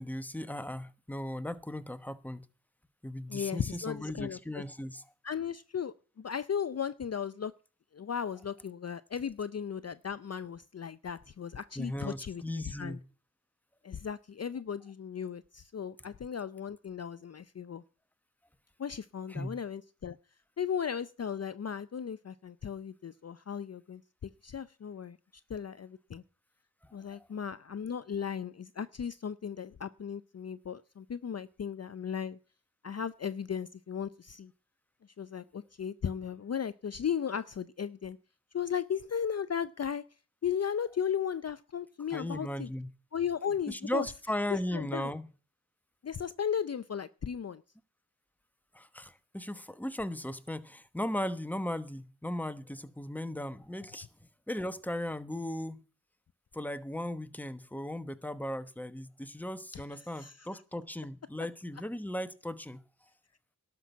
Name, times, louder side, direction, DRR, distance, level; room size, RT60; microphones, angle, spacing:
voice 1, 0.0-2.5 3.0-5.0 11.8-13.0 19.3-19.6 27.2-27.3 42.1-42.9 43.7-45.3 48.7-54.1 54.5-55.8 56.5-62.8, left 1 dB, 5° left, 1.1 m, -37 dB
voice 2, 3.3-4.6 5.2-7.5 7.9-13.0 13.8-17.8 18.8-20.2 20.6-25.2 25.5-26.2 26.9-32.4 32.8-34.5 35.2-38.2 38.5-40.0 40.4-42.7 43.1-44.1 44.5-45.1 46.0-47.6 59.7-59.8 60.2-60.6, left 7 dB, 45° left, 0.5 m, -36 dB
12.0 x 6.0 x 8.3 m
cardioid pair, 55°, 36 cm